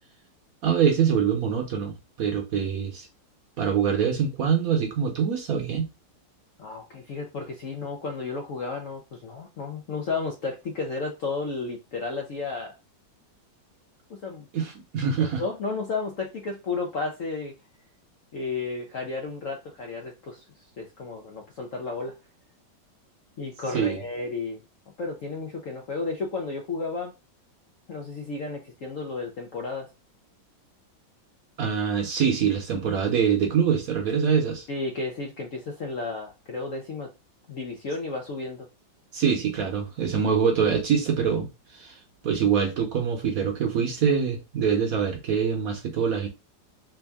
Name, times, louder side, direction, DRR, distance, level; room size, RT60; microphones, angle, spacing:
voice 1, 0.6-3.1 3.6-5.9 14.5-15.4 23.7-24.0 31.6-34.7 39.1-46.3, right 7 dB, 60° right, 1.0 m, -24 dB
voice 2, 6.6-12.8 14.1-14.5 15.2-17.5 18.3-20.4 20.8-22.1 23.4-24.6 25.0-27.1 27.9-29.9 34.7-37.1 37.5-38.7, left 3 dB, 60° left, 0.8 m, -33 dB
3.5 x 2.7 x 3.3 m
omnidirectional pair, 2.0 m